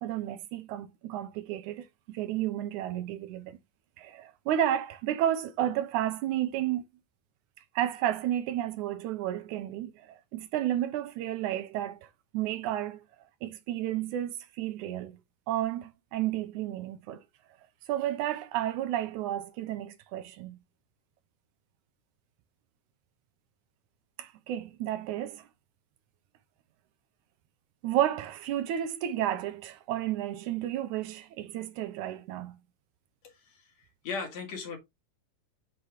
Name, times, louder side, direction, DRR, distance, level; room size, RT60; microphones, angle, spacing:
voice 1, 0.0-3.6 4.0-6.8 7.8-12.1 12.3-13.0 13.4-15.2 15.5-17.2 17.9-20.6 24.2-25.5 27.8-32.6, right 12 dB, 80° right, 2.0 m, -32 dB
voice 2, 33.2-34.8, left 4 dB, 60° left, 2.9 m, -38 dB
6.5 x 5.4 x 2.9 m
omnidirectional pair, 3.7 m